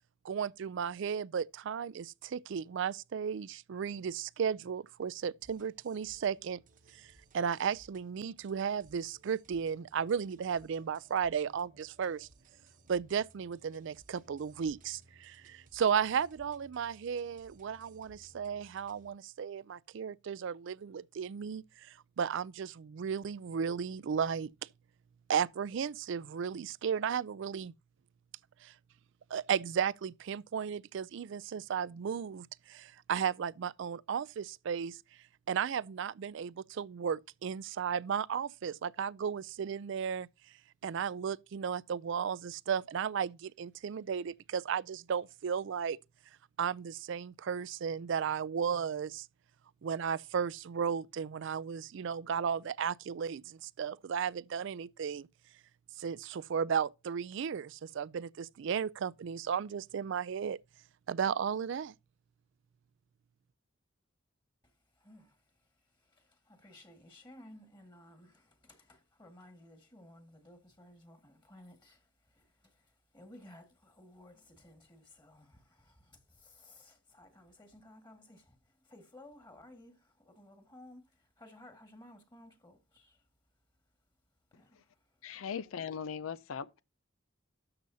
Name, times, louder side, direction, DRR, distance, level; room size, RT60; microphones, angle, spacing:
voice 1, 0.2-6.6 6.9-12.3 12.9-24.5 25.3-27.7 28.6-28.7 29.3-35.0 35.5-40.3 40.8-46.0 46.6-49.3 49.8-55.3 56.0-60.6 61.1-61.9, right 7 dB, 65° right, 0.4 m, -34 dB
sound 1, 5.4-19.1, right 2 dB, 40° right, 0.9 m, -63 dB
voice 2, 65.0-65.7 66.0-83.2 84.5-85.0, left 1 dB, 25° left, 1.8 m, -57 dB
voice 3, 85.2-86.8, left 7 dB, 85° left, 0.4 m, -39 dB
12.5 x 6.9 x 2.7 m
head